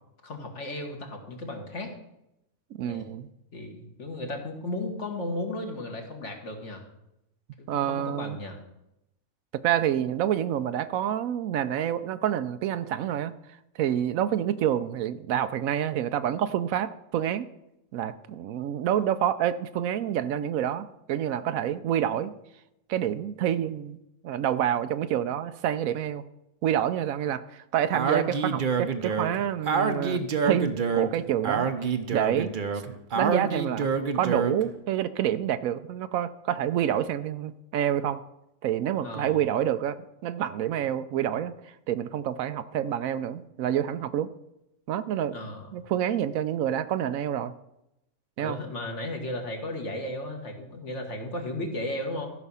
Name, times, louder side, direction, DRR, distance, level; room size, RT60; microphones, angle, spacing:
voice 1, 0.2-1.9 2.8-3.2 3.5-6.8 7.6-8.6 39.0-39.5 45.3-45.7 48.4-52.3, left 1 dB, 55° left, 2 dB, 1.9 m, -35 dB
voice 2, 2.7-3.3 7.7-8.4 9.5-13.3 13.8-17.5 17.9-22.4 22.9-24.0 24.2-26.2 26.6-31.7 32.1-32.5 33.1-33.9 34.1-38.2 38.6-44.3 44.9-45.4 45.7-47.5 48.4-48.6, right 10 dB, 75° right, 13 dB, 0.9 m, -28 dB
Speech, 27.9-34.7, right 5 dB, 45° right, 0.8 m, -27 dB
14.0 x 6.0 x 5.6 m, 0.86 s
omnidirectional pair, 1.5 m